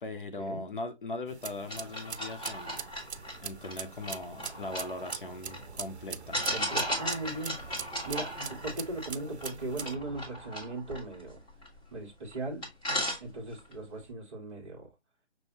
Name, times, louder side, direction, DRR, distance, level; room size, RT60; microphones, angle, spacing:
voice 1, 0.0-2.8 3.4-6.4, left 2 dB, 50° left, 0.8 m, -39 dB
sound 1, 1.3-9.9, right 6 dB, 75° right, 0.6 m, -43 dB
sound 2, 1.7-5.6 6.3-11.9 12.3-12.4 12.6-13.7, equal, 10° left, 1.2 m, -36 dB
sound 3, 4.4-11.8, right 4 dB, 45° right, 1.4 m, -51 dB
voice 2, 6.5-7.6 8.0-11.4 11.9-12.7 13.2-14.9, right 2 dB, 25° right, 1.4 m, -38 dB
6.1 x 2.6 x 2.9 m
figure-of-eight pair, 160°, 34 cm